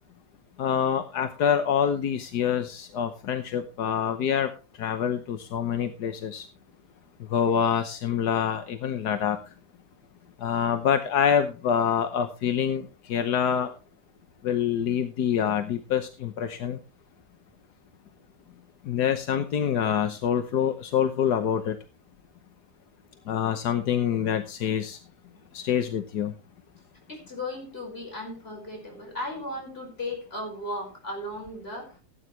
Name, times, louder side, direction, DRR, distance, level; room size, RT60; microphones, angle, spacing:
voice 1, 0.6-4.5 4.8-6.4 7.3-9.4 10.4-12.8 13.1-13.7 14.4-16.8 18.9-21.8 23.3-25.0 25.5-26.3, left 8 dB, 85° left, 9 dB, 1.6 m, -26 dB
voice 2, 27.1-32.0, left 1 dB, 35° left, 1 dB, 5.6 m, -36 dB
16.5 x 9.6 x 3.2 m, 0.32 s
omnidirectional pair, 1.7 m